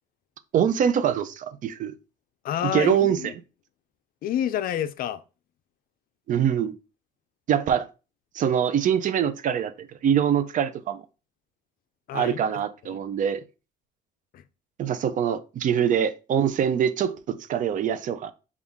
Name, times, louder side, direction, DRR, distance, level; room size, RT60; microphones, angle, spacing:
voice 1, 0.5-1.9 2.6-3.3 6.3-6.8 7.5-7.9 8.3-11.0 12.1-13.4 14.8-18.3, right 8 dB, 50° right, 0.5 m, -24 dB
voice 2, 2.4-3.3 4.2-5.2 12.1-12.4 12.9-13.0 14.3-14.4, left 10 dB, 60° left, 0.5 m, -28 dB
5.4 x 2.4 x 3.5 m
cardioid pair, 110°, 17 cm